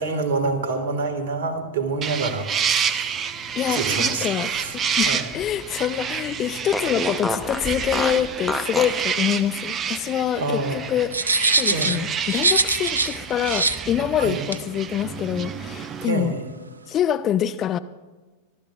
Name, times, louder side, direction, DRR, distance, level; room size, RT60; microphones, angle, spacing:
voice 1, 0.0-3.2 3.7-5.3 10.4-10.9 11.7-11.9 14.2-14.4 16.0-16.5, right 3 dB, 55° right, 7 dB, 1.8 m, -27 dB
sound 1, 2.0-16.0, right 7 dB, 25° right, 0.6 m, -29 dB
voice 2, 3.6-11.1 11.6-16.3 16.9-17.8, left 10 dB, 30° left, 13 dB, 0.5 m, -25 dB
Fart, 3.7-5.8 6.1-6.2 6.7-9.0, left 1 dB, ahead, 1.0 m, -30 dB
sound 2, 11.1-13.2 13.5-13.8 14.5-14.6, right 3 dB, 75° right, 0.6 m, -22 dB
27.5 x 12.0 x 2.5 m, 1.3 s
figure-of-eight pair, 90°, 0 cm